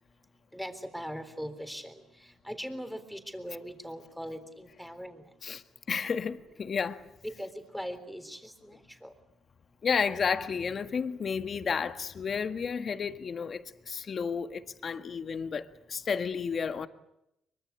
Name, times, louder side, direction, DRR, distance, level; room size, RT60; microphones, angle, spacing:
voice 1, 0.5-1.9 2.4-5.2 7.2-9.1, equal, ahead, 3.8 m, -40 dB
voice 2, 5.4-7.0 9.8-16.9, left 6 dB, 45° left, 1.6 m, -32 dB
24.0 x 24.0 x 8.3 m
cardioid pair, 90°, 0 cm